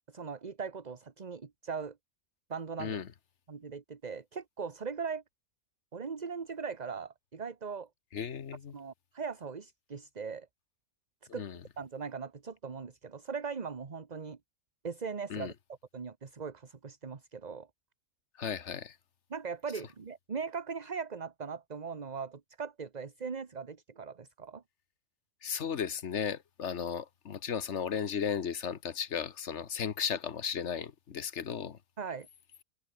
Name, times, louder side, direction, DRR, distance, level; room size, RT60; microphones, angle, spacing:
voice 1, 0.1-2.0 2.5-3.0 3.5-5.2 5.9-7.9 8.7-10.5 11.3-11.5 11.8-14.4 14.8-15.5 15.9-17.7 19.3-24.6 32.0-32.3, right 5 dB, 30° right, 1.2 m, -39 dB
voice 2, 8.1-8.7 11.3-11.6 15.3-15.5 18.4-19.0 25.4-31.8, left 7 dB, 55° left, 1.4 m, -35 dB
omnidirectional pair, 1.5 m